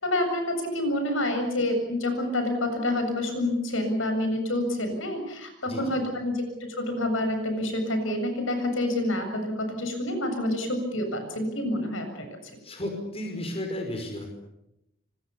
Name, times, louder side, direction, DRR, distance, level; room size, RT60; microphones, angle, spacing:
voice 1, 0.0-6.4 6.8-12.3, left 1 dB, 70° left, 6 dB, 7.4 m, -28 dB
voice 2, 5.7-6.0 12.6-14.3, left 1 dB, 30° left, 4 dB, 5.4 m, -33 dB
27.0 x 25.5 x 7.0 m, 0.83 s
head